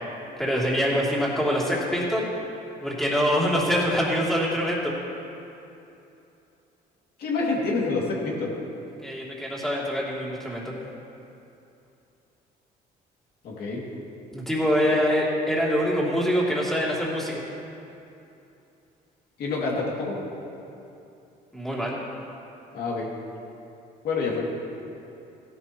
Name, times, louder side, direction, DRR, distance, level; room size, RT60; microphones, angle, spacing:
voice 1, 0.4-2.3 2.8-4.9 9.0-10.7 14.3-17.4 21.5-22.0, equal, ahead, -6 dB, 3.0 m, -24 dB
voice 2, 7.2-8.5 13.4-13.8 14.9-15.0 19.4-20.2 22.7-23.1 24.0-24.4, left 3 dB, 65° left, -3 dB, 2.5 m, -27 dB
16.0 x 11.5 x 3.0 m, 2.8 s
cardioid pair, 110°, 17 cm